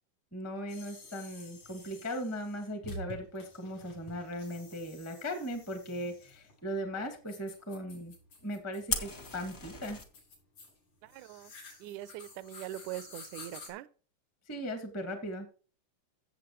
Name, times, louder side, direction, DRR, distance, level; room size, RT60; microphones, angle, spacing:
voice 1, 0.3-8.1 8.4-10.0 14.5-15.5, equal, 10° left, 0.8 m, -38 dB
sound 1, 0.7-13.7, left 1 dB, 75° left, 6.6 m, -51 dB
Fire, 8.9-10.0, left 3 dB, 50° left, 0.7 m, -36 dB
voice 2, 11.0-11.5 11.8-13.9, right 14 dB, 80° right, 2.0 m, -42 dB
15.5 x 7.5 x 3.1 m
omnidirectional pair, 3.6 m